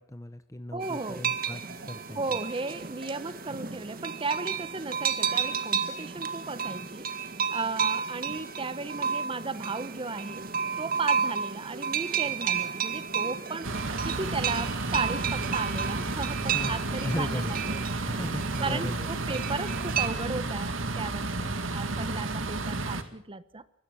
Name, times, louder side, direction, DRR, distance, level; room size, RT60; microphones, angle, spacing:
voice 1, 0.0-2.2 16.5-17.5 18.0-19.1, left 1 dB, 15° left, 10 dB, 0.9 m, -36 dB
voice 2, 0.7-1.2 2.1-7.1 7.5-10.4 10.8-13.7 14.0-18.2 18.6-23.6, right 3 dB, 25° right, 15 dB, 0.9 m, -35 dB
sound 1, 0.8-20.1, right 6 dB, 50° right, 1.8 m, -32 dB
sound 2, 13.6-23.0, right 2 dB, 80° right, 2.1 m, -32 dB
25.0 x 21.0 x 6.3 m, 0.69 s
head